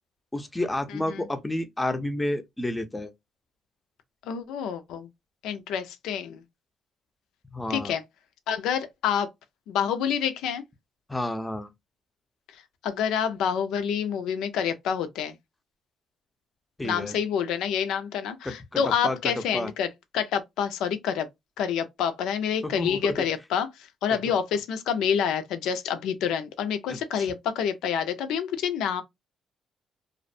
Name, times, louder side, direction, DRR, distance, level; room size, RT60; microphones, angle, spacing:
voice 1, 0.3-3.1 7.5-7.9 11.1-11.7 16.8-17.1 18.4-19.7 22.6-23.1 24.1-24.2 26.9-27.3, left 1 dB, 15° left, 0.5 m, -30 dB
voice 2, 0.9-1.3 4.3-5.1 5.4-6.4 7.7-8.0 8.5-9.3 9.7-10.6 12.8-15.4 16.8-21.3 21.6-29.0, left 8 dB, 90° left, 0.4 m, -28 dB
2.5 x 2.1 x 2.5 m
cardioid pair, 90°, 0 cm